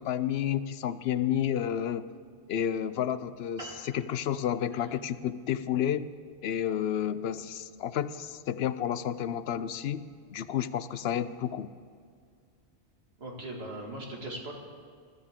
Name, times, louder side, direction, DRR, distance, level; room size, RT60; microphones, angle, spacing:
voice 1, 0.0-2.1 2.5-6.1 6.4-10.0 10.3-11.7, left 10 dB, 65° left, 14 dB, 0.8 m, -31 dB
sound 1, 3.6-8.3, right 1 dB, 30° right, 2.0 m, -51 dB
voice 2, 13.2-14.5, right 1 dB, 60° right, -1 dB, 2.5 m, -39 dB
21.0 x 14.0 x 3.7 m, 2.2 s
omnidirectional pair, 1.2 m